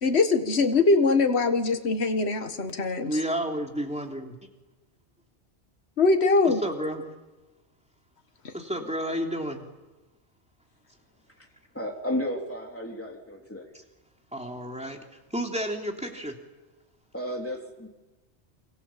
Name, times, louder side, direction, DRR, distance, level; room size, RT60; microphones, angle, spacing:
voice 1, 0.0-3.1 6.0-6.6 8.4-8.5, left 3 dB, 70° left, 7 dB, 1.8 m, -22 dB
voice 2, 3.0-4.5 6.4-7.1 8.5-9.7 14.3-15.0 15.3-16.4, equal, 5° right, 2 dB, 3.3 m, -31 dB
voice 3, 11.7-13.7 17.1-17.9, equal, 10° left, 1 dB, 3.5 m, -33 dB
28.5 x 26.0 x 7.5 m, 1.1 s
omnidirectional pair, 1.1 m